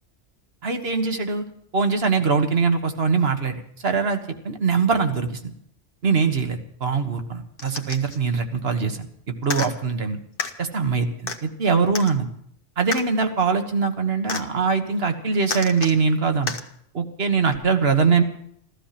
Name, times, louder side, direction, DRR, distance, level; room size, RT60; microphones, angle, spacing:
voice 1, 0.6-1.4 1.7-5.5 6.0-10.2 10.6-12.3 12.8-16.5 16.9-18.2, right 5 dB, 60° right, 6 dB, 1.7 m, -22 dB
sound 1, 7.6-8.2 9.4-9.7 10.4-10.5 11.3-11.4 11.9-12.1 12.9-13.0 14.3-14.4 15.5-16.0 16.5-16.6 17.5-17.6, left 4 dB, 50° left, 1.3 m, -30 dB
14.5 x 14.0 x 5.8 m, 0.69 s
omnidirectional pair, 1.2 m